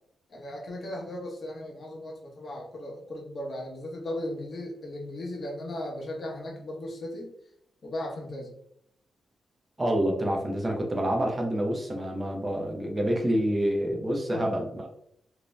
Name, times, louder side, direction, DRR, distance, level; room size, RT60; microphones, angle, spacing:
voice 1, 0.3-7.3 7.8-8.5 13.9-14.0 14.3-14.5, left 1 dB, 45° left, -1 dB, 0.7 m, -37 dB
voice 2, 9.8-14.9, equal, 20° right, 1 dB, 0.5 m, -27 dB
2.5 x 2.1 x 3.1 m, 0.71 s
wide cardioid pair, 170°, 0 cm